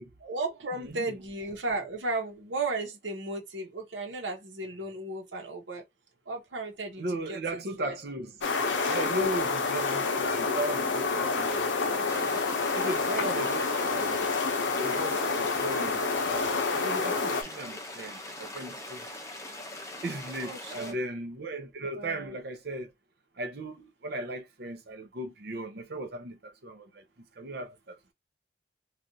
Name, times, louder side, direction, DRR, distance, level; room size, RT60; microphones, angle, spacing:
voice 1, 0.2-5.8 6.3-7.4 7.8-8.0 13.2-13.6 15.1-15.3 20.4-20.9 22.0-22.3, right 2 dB, 80° right, 1.0 m, -35 dB
voice 2, 0.7-1.2 7.0-8.4 8.8-12.4 12.7-14.2 14.8-19.1 20.0-22.9 23.4-27.0 27.4-28.0, right 1 dB, 60° right, 0.7 m, -37 dB
sound 1, 8.4-17.4, left 4 dB, 80° left, 0.7 m, -28 dB
sound 2, 12.1-20.9, left 1 dB, 15° left, 0.6 m, -42 dB
3.3 x 2.4 x 2.7 m
head